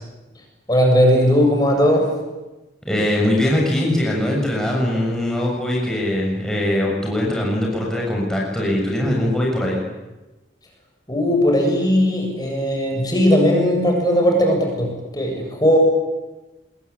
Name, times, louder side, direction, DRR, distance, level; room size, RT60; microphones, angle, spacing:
voice 1, 0.7-2.1 11.1-15.8, equal, 20° left, 1 dB, 7.4 m, -17 dB
voice 2, 2.9-9.8, left 1 dB, 5° left, -2 dB, 7.1 m, -21 dB
27.0 x 22.0 x 9.8 m, 1.1 s
head